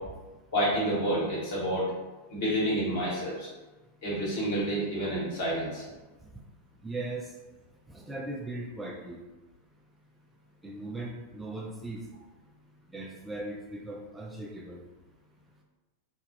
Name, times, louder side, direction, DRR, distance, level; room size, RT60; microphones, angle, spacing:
voice 1, 0.5-1.9 2.3-3.5 4.0-5.8, equal, 55° left, -6 dB, 1.2 m, -29 dB
voice 2, 6.8-7.3 7.9-9.2 10.6-12.0 12.9-14.8, right 2 dB, 10° right, -1 dB, 0.3 m, -38 dB
2.3 x 2.2 x 3.2 m, 1.2 s
figure-of-eight pair, 90°, 0 cm